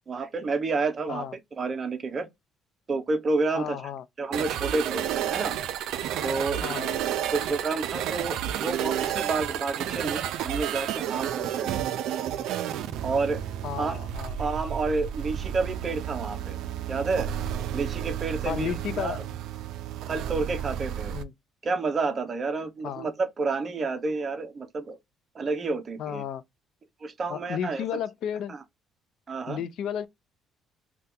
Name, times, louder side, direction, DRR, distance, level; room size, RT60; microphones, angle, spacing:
voice 1, 0.1-1.3 1.6-2.3 2.9-3.8 4.2-5.5 6.2-6.6 7.3-11.8 13.0-13.4 13.8-14.0 14.4-16.6 16.9-17.3 17.7-19.2 20.1-21.1 21.6-25.0 25.3-26.2 27.0-27.9 28.5-28.6 29.3-29.6, right 3 dB, 30° right, 0.6 m, -29 dB
voice 2, 3.5-4.0 6.6-7.0 13.6-14.4 18.5-19.2 21.1-21.3 22.8-23.1 26.0-26.4 27.3-28.5 29.5-30.1, left 9 dB, 65° left, 0.3 m, -33 dB
sound 1, 4.3-21.2, right 10 dB, 75° right, 0.4 m, -31 dB
2.7 x 2.2 x 3.5 m
cardioid pair, 115°, 0 cm